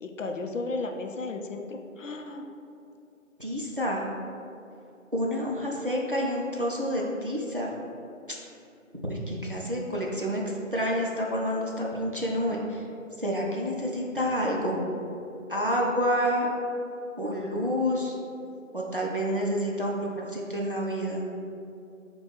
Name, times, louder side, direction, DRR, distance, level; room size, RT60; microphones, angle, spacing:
voice 1, 0.0-2.5, left 3 dB, 70° left, 3 dB, 0.5 m, -34 dB
voice 2, 3.4-4.0 5.1-7.7 9.1-10.4 10.7-12.8 13.2-14.8 15.5-16.5 17.2-18.2 18.7-21.2, equal, 45° right, -2 dB, 0.5 m, -28 dB
4.7 x 2.2 x 4.6 m, 2.7 s
figure-of-eight pair, 175°, 40 cm